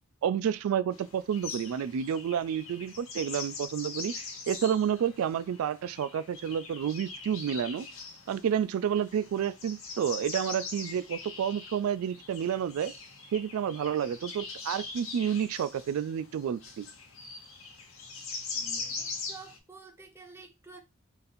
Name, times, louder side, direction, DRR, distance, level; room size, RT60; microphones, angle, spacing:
voice 1, 0.2-4.1 4.5-7.9 8.3-12.9 13.3-16.8, right 8 dB, 85° right, 0.3 m, -30 dB
sound 1, 0.9-19.6, left 4 dB, 70° left, 0.9 m, -42 dB
voice 2, 18.5-20.8, right 4 dB, 10° right, 0.6 m, -50 dB
4.0 x 2.6 x 4.1 m
head